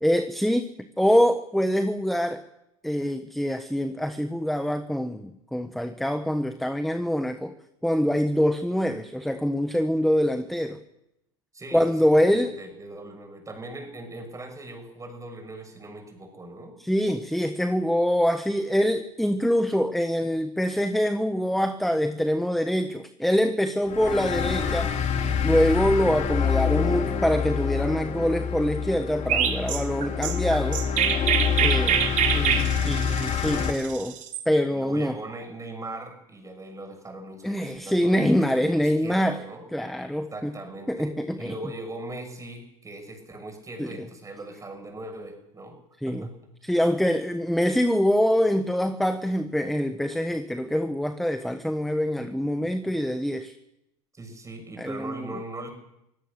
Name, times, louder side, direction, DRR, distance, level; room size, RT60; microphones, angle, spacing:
voice 1, 0.0-2.4 2.8-7.5 7.8-10.8 11.7-12.6 16.8-24.9 25.4-30.8 31.6-32.0 32.3-34.2 34.5-35.2 37.4-39.4 39.7-40.5 40.9-41.5 43.8-43.9 46.0-46.2 46.6-53.5 54.8-55.3, equal, ahead, 9 dB, 1.2 m, -24 dB
voice 2, 11.5-11.9 12.2-16.7 31.5-31.9 34.7-39.7 40.3-45.8 46.0-46.3 54.1-55.7, right 2 dB, 15° right, 5 dB, 6.8 m, -40 dB
sound 1, 23.9-33.7, left 7 dB, 35° left, 3.4 m, -26 dB
Chirp tweet, 29.3-34.4, right 9 dB, 40° right, 3.0 m, -25 dB
24.5 x 17.5 x 6.9 m, 0.84 s
hypercardioid pair, 100°, 19 cm